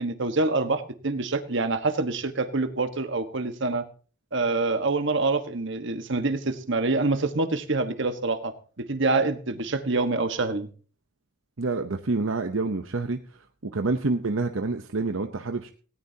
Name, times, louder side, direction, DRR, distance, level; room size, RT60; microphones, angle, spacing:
voice 1, 0.0-3.8 4.3-10.7, right 3 dB, 65° right, 8 dB, 1.4 m, -26 dB
voice 2, 11.6-13.2 13.6-15.7, right 3 dB, 80° right, 6 dB, 0.9 m, -27 dB
18.5 x 17.5 x 2.9 m, 0.40 s
head